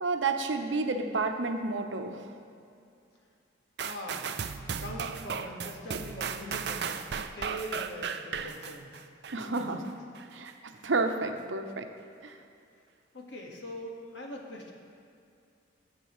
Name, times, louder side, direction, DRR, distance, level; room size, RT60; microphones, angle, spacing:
voice 1, 0.0-2.3 9.3-9.8 10.3-11.9 12.2-12.3, right 3 dB, 90° right, 5 dB, 0.8 m, -30 dB
voice 2, 3.8-4.3 4.8-9.0 9.5-9.6 13.1-14.7, equal, 75° left, -1 dB, 1.7 m, -42 dB
sound 1, 3.8-9.6 10.1-10.3, right 6 dB, 60° right, 0.5 m, -35 dB
20.0 x 7.6 x 3.1 m, 2.4 s
head